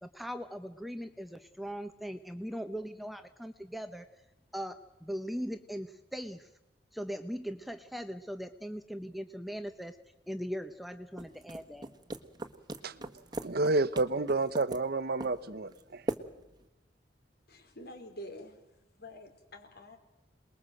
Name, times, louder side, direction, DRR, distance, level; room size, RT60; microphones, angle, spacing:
voice 1, 0.0-4.1 4.5-6.5 6.9-10.0 10.3-11.9, equal, ahead, 8 dB, 1.0 m, -40 dB
sound 1, 11.2-16.7, right 1 dB, 25° right, 1.5 m, -41 dB
voice 2, 13.4-16.0, right 2 dB, 55° right, 15 dB, 1.0 m, -30 dB
voice 3, 17.5-18.6 19.0-20.0, left 1 dB, 60° left, 5 dB, 4.7 m, -47 dB
28.0 x 21.0 x 7.8 m, 0.99 s
head